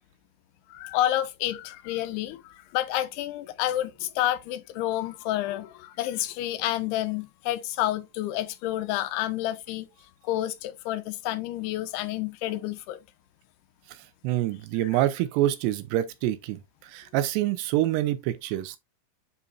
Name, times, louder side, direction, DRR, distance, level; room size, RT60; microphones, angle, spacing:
voice 1, 0.7-9.9 10.2-13.0, left 14 dB, 85° left, 2.7 m, -29 dB
voice 2, 14.2-18.8, right 14 dB, 85° right, 2.9 m, -26 dB
10.0 x 4.0 x 2.5 m
omnidirectional pair, 4.7 m